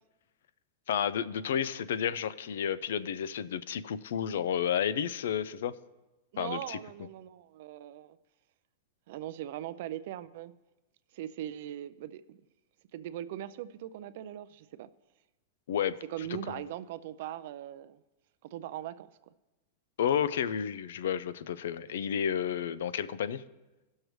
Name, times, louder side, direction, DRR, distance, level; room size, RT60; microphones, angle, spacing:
voice 1, 0.9-5.7 6.4-6.8 15.7-16.6 20.0-23.4, left 8 dB, 85° left, 15 dB, 0.4 m, -31 dB
voice 2, 6.3-8.2 9.1-10.5 11.1-12.4 12.9-14.9 16.1-18.0 18.4-19.1, right 12 dB, 60° right, 13 dB, 0.4 m, -40 dB
17.0 x 6.4 x 3.1 m, 1.1 s
supercardioid pair, 145°, 0 cm